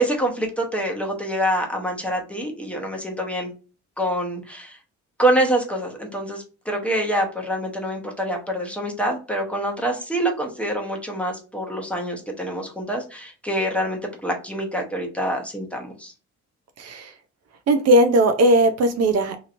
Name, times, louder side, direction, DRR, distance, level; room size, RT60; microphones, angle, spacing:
voice 1, 0.0-3.5 4.0-4.8 5.2-16.1, right 1 dB, 5° left, 0 dB, 0.8 m, -25 dB
voice 2, 16.8-17.1 17.7-19.4, right 1 dB, 55° right, 7 dB, 0.5 m, -18 dB
2.9 x 2.9 x 2.5 m, 0.34 s
cardioid pair, 90°, 30 cm